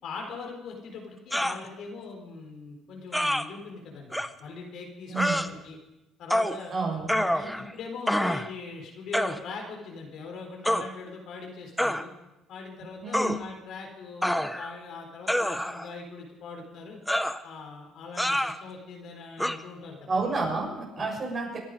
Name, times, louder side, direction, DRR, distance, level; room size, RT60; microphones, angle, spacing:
voice 1, 0.0-5.8 6.2-6.7 7.3-12.1 12.5-17.0 17.4-20.2 21.0-21.1, left 4 dB, 70° left, 1 dB, 4.0 m, -41 dB
sound 1, 1.3-1.6 3.1-3.4 4.1-4.3 5.1-5.5 6.3-6.6 7.1-7.7 8.1-8.5 9.1-9.4 10.6-10.9 11.8-12.0 13.1-13.4 14.2-14.8 15.3-15.9 17.1-17.4 18.2-18.6 19.4-19.6, equal, 5° left, 0.8 m, -26 dB
voice 2, 5.1-5.4 6.7-7.2 13.0-13.3 20.1-21.6, right 3 dB, 45° right, -1 dB, 7.0 m, -30 dB
25.5 x 10.5 x 5.3 m, 0.97 s
supercardioid pair, 75°, 0 cm